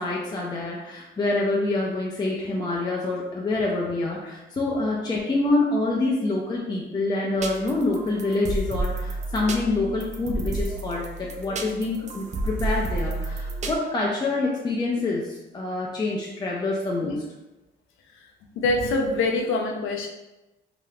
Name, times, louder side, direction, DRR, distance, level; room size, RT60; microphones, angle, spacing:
voice 1, 0.0-17.2, left 2 dB, 20° left, -3 dB, 0.5 m, -26 dB
sound 1, 7.4-13.8, right 2 dB, 35° right, 0.4 m, -31 dB
voice 2, 18.6-20.1, left 2 dB, 85° left, 2 dB, 0.5 m, -24 dB
3.3 x 2.9 x 2.3 m, 0.99 s
cardioid pair, 90°, 20 cm